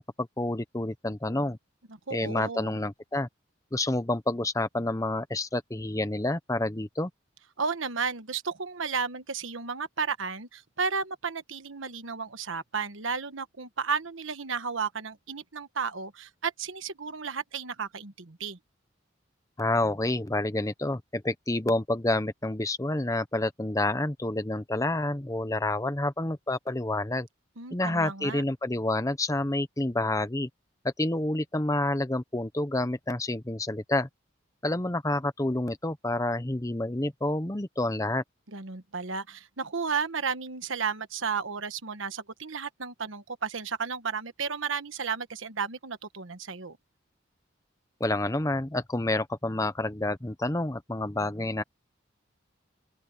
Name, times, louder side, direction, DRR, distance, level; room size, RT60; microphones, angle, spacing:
voice 1, 0.0-1.6 2.1-3.3 3.7-7.1 19.6-27.3 27.7-30.5 30.8-34.1 34.6-38.2 48.0-51.6, left 2 dB, 15° left, 0.9 m, -29 dB
voice 2, 1.9-2.8 7.6-18.6 27.6-28.4 38.5-46.8, right 5 dB, 80° right, 1.3 m, -33 dB
open air
head